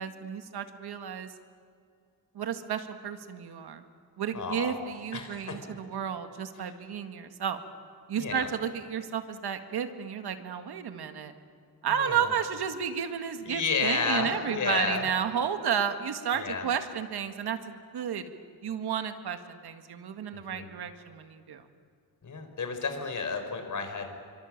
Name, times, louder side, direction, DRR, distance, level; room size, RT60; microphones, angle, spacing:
voice 1, 0.0-1.3 2.3-3.8 4.2-7.6 8.1-11.3 11.8-18.2 18.6-21.6, right 8 dB, 85° right, 8 dB, 1.9 m, -32 dB
voice 2, 4.3-4.7 5.1-5.6 8.2-8.5 12.0-12.3 13.5-15.1 16.4-16.6 20.3-20.7 22.2-24.1, left 4 dB, 50° left, 6 dB, 4.2 m, -31 dB
28.5 x 24.5 x 7.4 m, 2.3 s
wide cardioid pair, 120°, 38 cm